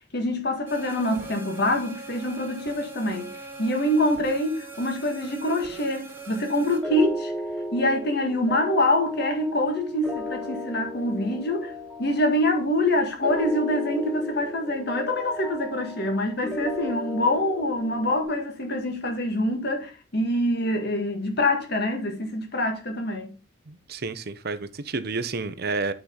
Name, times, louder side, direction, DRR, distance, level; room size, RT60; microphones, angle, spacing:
voice 1, 0.1-3.3 3.6-7.3 7.7-11.7 12.0-23.3, left 1 dB, 55° left, 1.9 m, -25 dB
sound 1, 0.7-6.8, right 3 dB, 10° right, 1.7 m, -41 dB
sound 2, 6.8-18.2, equal, 5° left, 2.0 m, -35 dB
voice 2, 23.7-25.9, right 3 dB, 55° right, 0.7 m, -30 dB
8.5 x 5.0 x 3.9 m
head